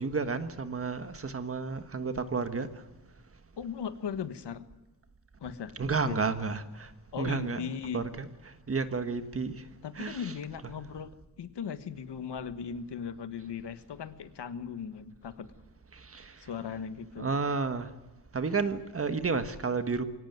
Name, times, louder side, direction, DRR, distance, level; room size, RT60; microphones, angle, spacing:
voice 1, 0.0-2.8 5.8-6.9 7.2-7.7 7.9-9.7 9.9-10.3 15.9-16.5 17.2-17.9 18.3-20.0, right 4 dB, 35° right, 1.4 m, -32 dB
voice 2, 3.6-4.6 5.4-5.7 6.0-6.2 7.1-8.0 9.8-11.1 11.4-15.5 16.4-17.3, left 7 dB, 75° left, 1.5 m, -38 dB
23.0 x 17.5 x 9.4 m
wide cardioid pair, 170°, 42 cm